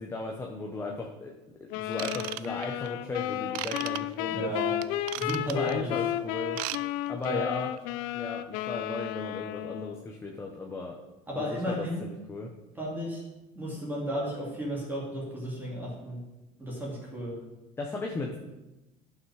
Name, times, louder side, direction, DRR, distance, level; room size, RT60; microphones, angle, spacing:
voice 1, 0.0-1.3 1.6-4.5 5.5-6.6 7.1-7.7 8.1-11.0 11.3-12.5 17.8-18.4, left 3 dB, 15° left, 1 dB, 0.9 m, -36 dB
sound 1, 1.7-10.1, left 13 dB, 80° left, 0.5 m, -33 dB
Ratchet pawl / Tools, 1.9-2.9 3.5-4.0 4.8-5.7 6.4-6.8 7.1-7.3 7.8-7.9, right 17 dB, 75° right, 0.4 m, -35 dB
voice 2, 4.3-4.7 5.2-5.9 7.2-7.5 11.3-12.1 12.8-13.2 13.5-16.2 16.6-17.4, equal, 15° right, -5 dB, 2.6 m, -34 dB
11.5 x 5.7 x 4.9 m, 1.0 s
cardioid pair, 140°, 15 cm